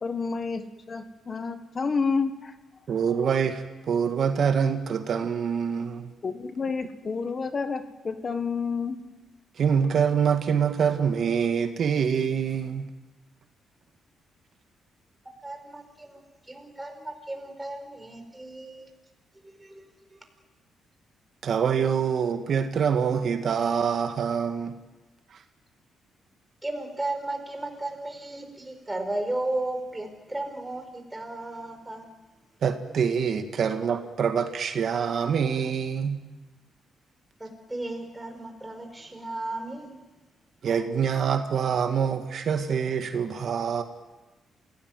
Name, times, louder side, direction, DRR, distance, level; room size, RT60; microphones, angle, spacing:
voice 1, 0.0-2.5 6.2-9.0, left 5 dB, 35° left, 9 dB, 1.4 m, -29 dB
voice 2, 2.9-6.1 9.6-12.8 21.4-24.8 32.6-36.2 40.6-43.8, right 7 dB, 55° right, 7 dB, 1.8 m, -25 dB
voice 3, 15.2-18.9 19.3-20.2 26.6-32.1 37.4-40.0, right 2 dB, 10° right, 5 dB, 4.9 m, -35 dB
27.5 x 17.5 x 9.3 m, 1.1 s
cardioid pair, 110°, 0 cm